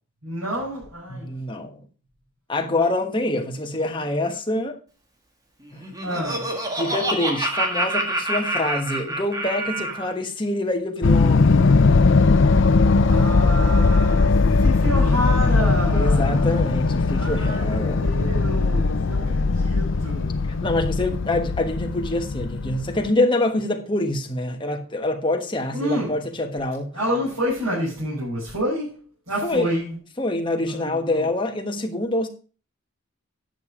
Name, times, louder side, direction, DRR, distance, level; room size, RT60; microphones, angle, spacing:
voice 1, 0.2-1.4 6.0-6.5 12.3-12.6 13.1-16.6 17.1-20.4 25.7-26.2 26.9-29.0 29.3-30.0 30.6-31.3, equal, 85° right, 5.9 m, -29 dB
voice 2, 1.1-1.9 2.5-4.8 5.7-5.9 6.7-11.5 15.9-18.1 20.4-27.0 29.4-29.7 30.2-32.3, left 2 dB, 20° left, 1.3 m, -25 dB
Laughter, 5.7-10.1, right 1 dB, 15° right, 1.6 m, -27 dB
sound 1, 11.0-23.1, left 3 dB, 55° left, 0.5 m, -19 dB
10.5 x 6.9 x 4.9 m
head